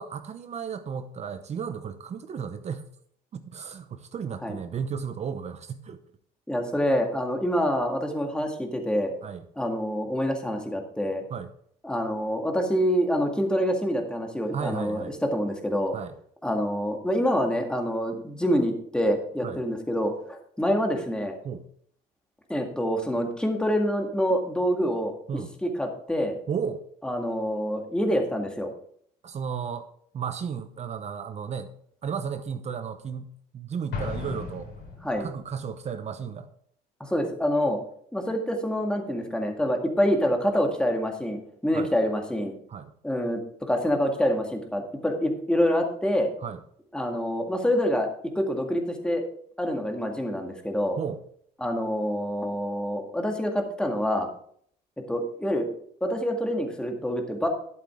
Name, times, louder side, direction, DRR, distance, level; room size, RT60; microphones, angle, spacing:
voice 1, 0.0-2.9 3.3-6.0 9.2-9.4 11.3-11.5 14.5-15.2 15.9-16.2 19.4-19.6 21.4-21.7 25.3-25.5 26.5-26.8 29.2-29.9 30.1-31.7 32.0-34.7 35.2-36.5 41.7-41.9 42.7-42.9 46.4-46.6 51.0-51.2, right 7 dB, 40° right, 9 dB, 0.8 m, -34 dB
voice 2, 6.5-9.1 9.6-11.2 11.8-16.0 16.4-21.3 22.5-25.1 25.6-26.4 27.0-28.7 35.0-35.3 37.0-37.8 38.1-42.5 43.0-46.3 46.9-48.1 48.4-49.2 49.6-51.0 51.6-54.3 55.1-55.7 56.0-57.5, equal, 5° left, 3 dB, 1.9 m, -26 dB
Explosion, 33.9-35.5, left 4 dB, 80° left, 4.1 m, -35 dB
11.5 x 7.7 x 3.7 m, 0.63 s
cardioid pair, 110°, 17 cm